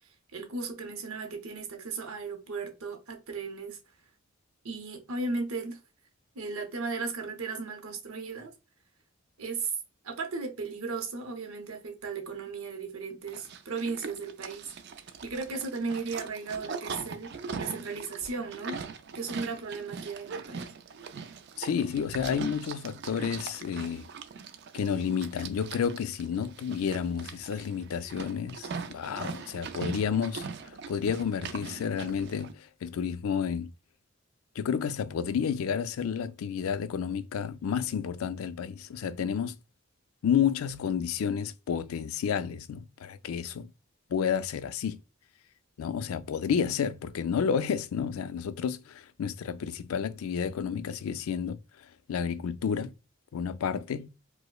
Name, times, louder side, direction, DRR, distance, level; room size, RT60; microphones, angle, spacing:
voice 1, 0.3-3.8 4.6-5.8 6.3-8.5 9.4-9.7 10.0-14.7 15.2-18.8 19.1-20.7, right 4 dB, 85° right, 0.8 m, -36 dB
Livestock farm animals working animals, 13.3-32.5, right 5 dB, 50° right, 0.4 m, -41 dB
voice 2, 21.6-24.1 24.7-33.7 34.6-39.6 40.2-43.7 44.1-45.0 45.8-51.6 52.1-52.9 53.3-54.1, left 7 dB, 85° left, 0.4 m, -31 dB
4.8 x 2.0 x 2.3 m
head